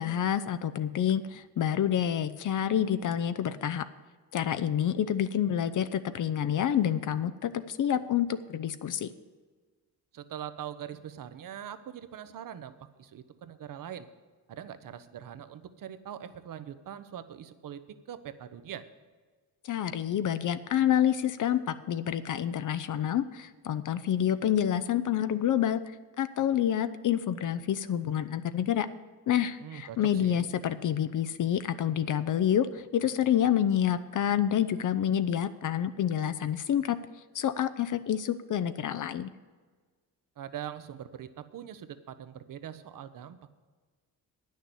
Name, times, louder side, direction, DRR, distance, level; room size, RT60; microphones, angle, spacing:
voice 1, 0.0-3.9 4.3-9.1 19.6-25.8 26.2-28.9 29.3-37.0 37.3-39.3, left 10 dB, 50° left, 12 dB, 0.6 m, -28 dB
voice 2, 10.1-14.1 14.5-18.9 29.6-30.5 40.4-43.5, right 9 dB, 55° right, 12 dB, 0.8 m, -42 dB
9.6 x 6.5 x 8.1 m, 1.4 s
cardioid pair, 75°, 39 cm